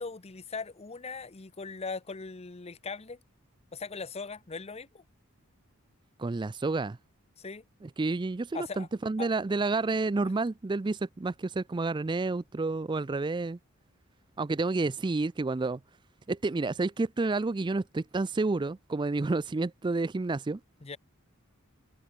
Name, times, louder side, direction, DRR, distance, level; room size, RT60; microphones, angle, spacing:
voice 1, 0.0-3.2 3.7-5.0 7.4-7.6 8.5-8.9 9.2-9.3 20.8-21.0, left 4 dB, 30° left, 0.8 m, -39 dB
voice 2, 6.2-7.0 7.8-13.6 14.4-15.8 16.3-20.6, right 3 dB, 20° right, 0.4 m, -30 dB
open air
head